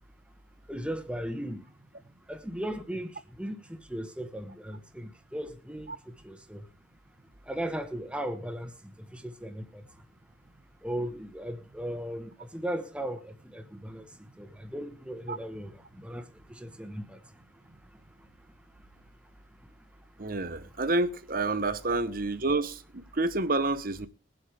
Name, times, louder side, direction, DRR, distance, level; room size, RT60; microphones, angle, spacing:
voice 1, 0.7-1.7 2.3-6.6 7.5-9.8 10.8-17.2, equal, 5° right, 1.3 m, -37 dB
voice 2, 20.2-24.1, right 2 dB, 45° right, 1.0 m, -29 dB
22.0 x 7.9 x 3.5 m
head